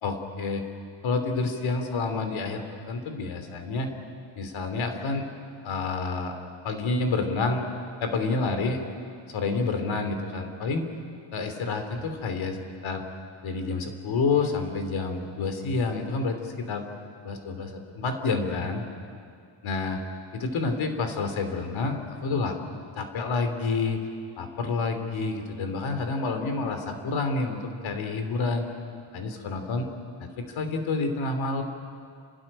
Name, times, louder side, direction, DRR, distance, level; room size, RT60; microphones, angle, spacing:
voice 1, 0.0-0.6 1.0-3.9 4.4-5.3 5.6-6.3 6.6-7.7 8.0-8.8 9.3-10.8 11.3-13.0 13.4-16.8 17.2-18.8 19.6-20.0 20.3-22.5 23.0-24.0 24.4-28.6 29.1-29.9 30.2-31.6, left 3 dB, 75° left, 6 dB, 3.1 m, -28 dB
29.5 x 13.0 x 9.9 m, 2.3 s
cardioid pair, 115°, 47 cm